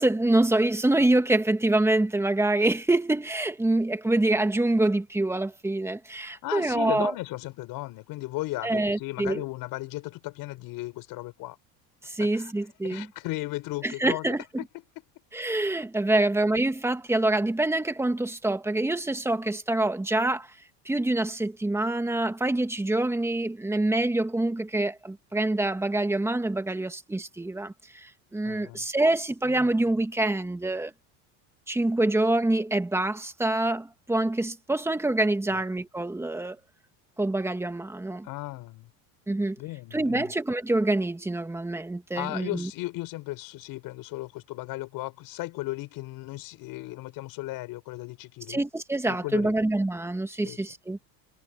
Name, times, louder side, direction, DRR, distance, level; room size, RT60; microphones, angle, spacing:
voice 1, 0.0-7.1 8.6-9.4 12.0-13.1 13.8-14.4 15.3-20.5 20.9-30.9 31.7-36.6 37.2-38.3 39.3-39.6 39.9-42.7 48.5-51.0, right 2 dB, 5° right, 1.8 m, -26 dB
voice 2, 6.3-11.6 12.2-12.5 12.8-14.3 14.6-14.7 28.4-28.8 35.5-35.6 38.2-38.9 39.6-40.3 42.2-48.6 49.1-49.5 50.4-50.6, left 19 dB, 55° left, 6.9 m, -36 dB
cardioid pair, 145°, 41 cm